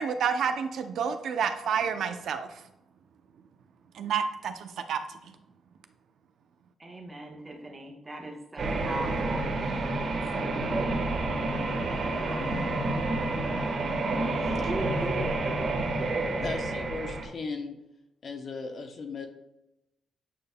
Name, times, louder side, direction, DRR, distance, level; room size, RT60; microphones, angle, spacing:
voice 1, 0.0-2.6 3.9-5.3, right 7 dB, 65° right, 8 dB, 0.5 m, -30 dB
voice 2, 6.8-9.5 10.1-10.9 12.1-12.5 14.7-16.4, right 2 dB, 15° right, 1 dB, 1.1 m, -38 dB
sound 1, 8.6-17.2, right 2 dB, 45° right, 1.3 m, -29 dB
voice 3, 16.4-17.8 18.2-19.3, left 4 dB, 45° left, 4 dB, 0.8 m, -37 dB
8.5 x 5.3 x 2.2 m, 0.91 s
cardioid pair, 145°, 0 cm